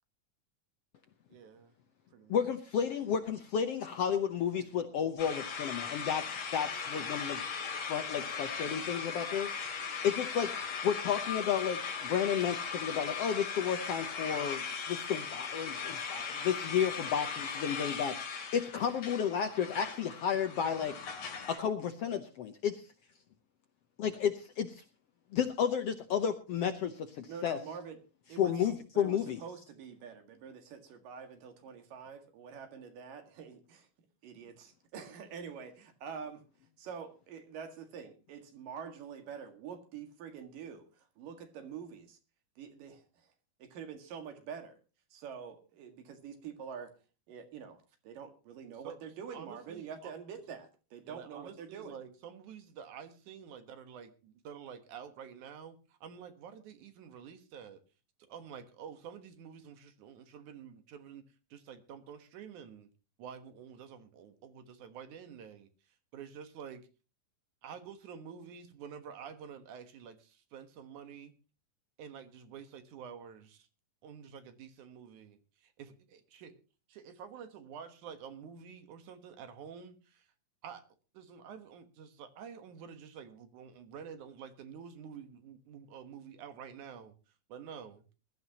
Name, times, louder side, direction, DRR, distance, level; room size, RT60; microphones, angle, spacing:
voice 1, 1.3-1.8 2.1-2.4 48.8-49.0 49.3-50.1 51.0-57.8 58.3-61.2 61.5-62.9 63.2-65.7 66.1-66.9 67.6-71.3 72.0-73.7 74.0-76.6 76.9-80.3 80.6-80.8 81.1-87.1 87.5-88.0, right 7 dB, 70° right, 9 dB, 2.7 m, -49 dB
voice 2, 2.3-7.4 7.8-9.5 10.0-21.0 21.5-22.9 24.0-24.8 25.3-27.6 28.4-29.4, left 8 dB, 70° left, 7 dB, 1.5 m, -32 dB
sound 1, 5.2-21.6, left 6 dB, 50° left, 3.5 m, -38 dB
voice 3, 27.3-28.0 28.3-28.5 28.9-33.9 34.2-36.4 36.8-42.2 42.6-43.0 43.6-44.8 45.1-46.9 47.3-47.8 48.0-52.0, right 7 dB, 85° right, 6 dB, 3.6 m, -46 dB
21.0 x 13.0 x 2.9 m, 0.32 s
omnidirectional pair, 3.8 m